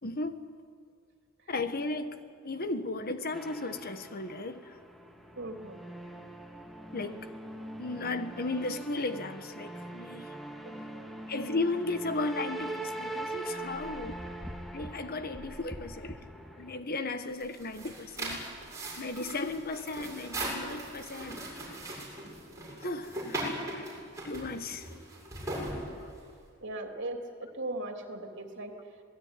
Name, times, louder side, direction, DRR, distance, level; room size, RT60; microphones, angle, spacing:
voice 1, 0.0-0.5 1.5-4.8 6.9-7.3 7.8-10.3 11.3-14.3 14.7-16.2 16.6-18.4 19.0-21.4 22.8-23.5 24.2-24.9 26.0-26.1, left 2 dB, 45° left, 1.4 m, -35 dB
sound 1, 3.3-16.8, right 1 dB, ahead, 1.8 m, -42 dB
voice 2, 5.4-5.8 10.6-10.8 26.6-28.7, right 2 dB, 60° right, 3.2 m, -38 dB
sound 2, 17.3-26.4, right 1 dB, 15° right, 7.5 m, -39 dB
26.5 x 19.0 x 9.9 m
head